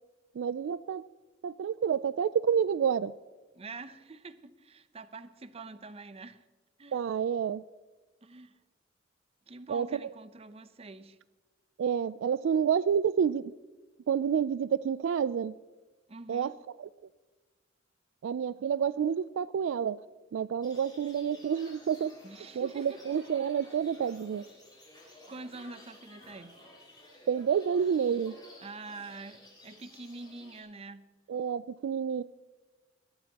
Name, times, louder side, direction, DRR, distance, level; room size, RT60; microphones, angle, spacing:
voice 1, 0.4-1.1 1.4-3.1 6.9-7.6 9.7-9.9 11.8-13.5 14.1-15.6 16.3-16.5 18.2-20.0 20.3-22.2 22.6-24.4 27.3-28.4 31.3-32.2, right 7 dB, 70° right, 17 dB, 0.3 m, -29 dB
voice 2, 3.5-6.5 6.8-7.0 8.2-8.6 9.5-11.2 16.1-16.5 22.2-23.0 25.0-26.6 28.6-31.1, right 3 dB, 30° right, 13 dB, 0.6 m, -46 dB
sound 1, 20.6-30.6, left 1 dB, 20° left, 4.4 m, -54 dB
20.5 x 13.0 x 2.9 m, 1.2 s
head